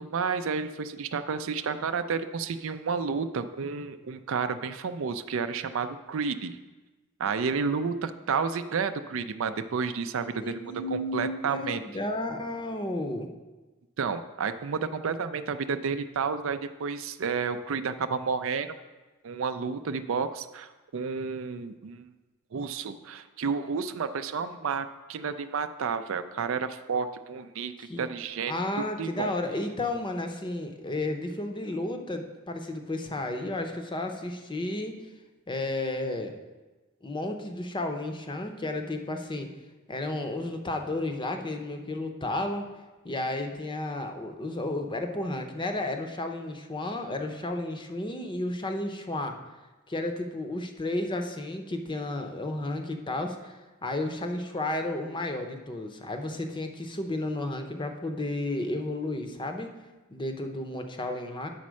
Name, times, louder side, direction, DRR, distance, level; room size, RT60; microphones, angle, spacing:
voice 1, 0.0-6.6 7.2-10.6 10.9-11.8 14.0-18.8 19.2-22.1 22.5-28.5 29.0-29.3, right 5 dB, 65° right, 10 dB, 0.4 m, -31 dB
voice 2, 10.4-13.3 27.8-28.1 28.5-35.0 35.5-36.3 37.0-39.5 39.9-42.7 43.0-49.4 49.9-59.7 60.1-61.5, left 2 dB, 25° left, 5 dB, 0.7 m, -32 dB
9.2 x 4.2 x 6.2 m, 1.2 s
head